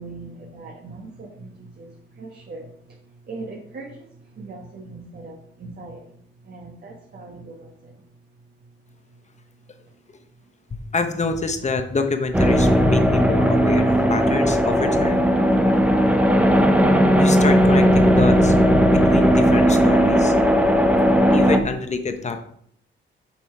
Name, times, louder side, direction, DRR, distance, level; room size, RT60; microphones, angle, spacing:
voice 1, 0.0-3.0 3.2-6.1 6.4-7.9, right 3 dB, 50° right, 1.4 m, -40 dB
voice 2, 10.7-15.6 17.2-18.5 18.8-20.3 21.3-22.4, left 4 dB, 35° left, 1.1 m, -26 dB
sound 1, 12.3-21.6, equal, 5° right, 0.9 m, -17 dB
7.0 x 5.5 x 4.7 m
cardioid pair, 95°, 21 cm